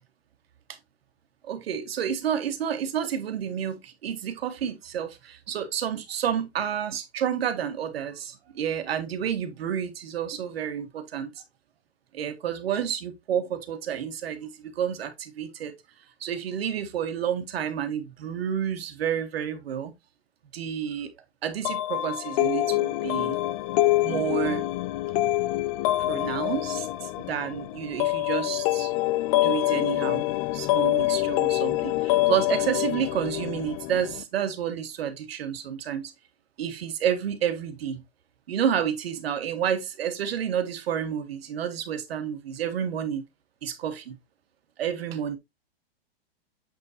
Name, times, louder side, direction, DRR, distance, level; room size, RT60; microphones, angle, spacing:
voice 1, 1.4-11.4 12.1-15.7 16.2-19.9 20.5-21.1 21.4-23.4 24.0-24.7 26.1-28.9 29.4-30.2 30.5-36.1 36.6-38.0 38.5-43.2 43.6-44.2 44.8-45.4, right 9 dB, 70° right, 1.9 m, -30 dB
sound 1, 21.6-34.2, left 16 dB, 35° left, 0.5 m, -26 dB
8.1 x 5.6 x 2.7 m
hypercardioid pair, 130°, 32 cm